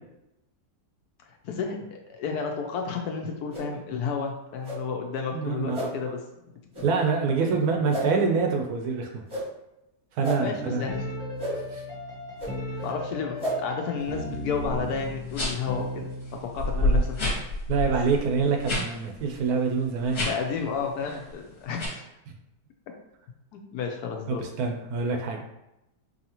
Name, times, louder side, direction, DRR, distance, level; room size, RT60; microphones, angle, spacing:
voice 1, 1.4-6.2 10.3-11.1 12.8-17.4 18.1-18.2 20.3-22.1 23.5-24.5, left 5 dB, 70° left, 3 dB, 1.0 m, -32 dB
sound 1, 3.5-3.7 4.6-4.8 5.7-5.9 6.7-6.9 7.9-8.1 9.3-9.5 10.2-10.4 11.4-11.5 12.4-12.5 13.4-13.5, right 1 dB, 25° right, 0.8 m, -31 dB
voice 2, 5.3-6.1 6.8-9.2 10.1-10.8 11.5-11.8 16.7-17.0 17.7-20.2 24.3-25.4, right 5 dB, 70° right, 2 dB, 1.0 m, -26 dB
sound 2, 10.6-16.6, left 1 dB, 5° left, 0.5 m, -36 dB
sound 3, 14.6-14.8 15.3-15.7 16.2-16.3 16.6-18.9 19.2-19.4 20.0-20.5 21.0-21.3 21.8-21.9, left 1 dB, 40° left, 1.2 m, -27 dB
4.7 x 2.7 x 2.9 m, 0.89 s
omnidirectional pair, 1.8 m